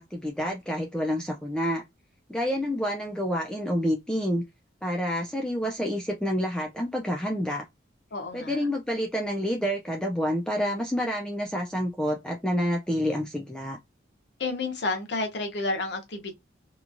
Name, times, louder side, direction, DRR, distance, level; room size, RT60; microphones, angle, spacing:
voice 1, 0.0-1.8 2.3-4.4 4.8-7.6 8.3-13.8, equal, 5° left, 0.3 m, -28 dB
voice 2, 8.1-8.6 14.4-16.3, left 3 dB, 65° left, 0.7 m, -30 dB
2.9 x 2.2 x 2.5 m
head